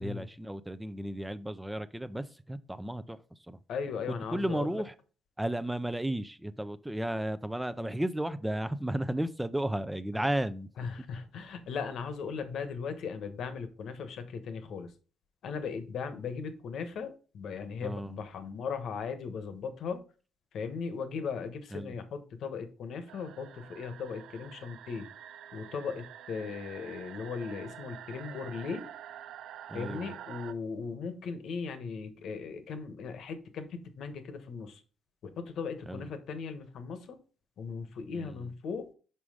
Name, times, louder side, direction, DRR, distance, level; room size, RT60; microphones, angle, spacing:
voice 1, 0.0-3.2 3.5-3.6 4.3-4.9 5.4-10.7 17.8-18.2 21.7-21.9 29.7-30.1 35.9-36.1 38.1-38.5, right 1 dB, 5° right, 0.5 m, -34 dB
voice 2, 3.7-4.8 10.1-10.2 10.8-14.9 15.4-20.0 20.5-25.1 25.5-28.9 29.7-34.8 35.2-37.2 37.6-38.9, left 5 dB, 70° left, 1.2 m, -38 dB
sound 1, 23.1-30.5, right 10 dB, 80° right, 0.4 m, -47 dB
5.6 x 5.0 x 4.9 m
cardioid pair, 90°, 0 cm